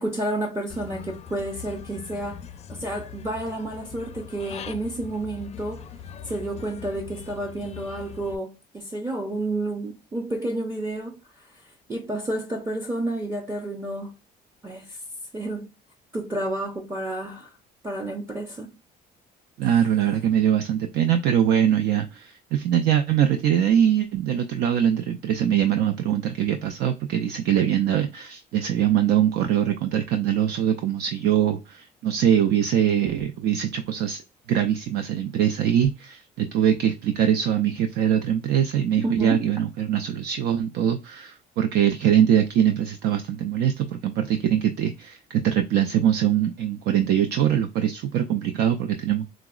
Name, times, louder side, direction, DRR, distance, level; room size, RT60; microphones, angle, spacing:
voice 1, 0.0-2.4 2.7-5.9 6.3-14.1 14.6-15.0 15.3-15.7 16.1-17.6 17.8-18.7 39.0-39.5, right 1 dB, 15° right, 0.5 m, -30 dB
Human voice / Bird, 0.7-8.3, left 8 dB, 40° left, 0.4 m, -41 dB
voice 2, 19.6-34.2 34.5-49.3, right 9 dB, 70° right, 0.4 m, -22 dB
4.6 x 2.0 x 2.3 m
cardioid pair, 110°, 17 cm